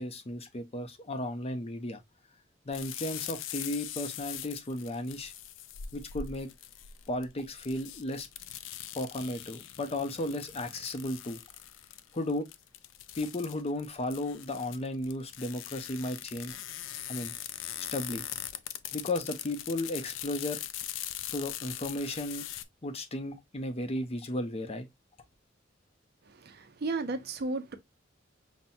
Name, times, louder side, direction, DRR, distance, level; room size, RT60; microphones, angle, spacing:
voice 1, 0.0-2.0 2.7-5.3 5.9-6.5 7.1-8.3 8.9-11.4 12.1-12.5 13.2-16.6 17.1-17.3 17.9-18.2 18.9-20.6 21.3-22.5 22.8-24.9, left 1 dB, 35° left, 0.6 m, -34 dB
sound 1, 2.7-22.6, left 11 dB, 90° left, 0.4 m, -41 dB
voice 2, 26.3-27.8, right 3 dB, 55° right, 0.6 m, -34 dB
5.7 x 2.1 x 2.6 m
head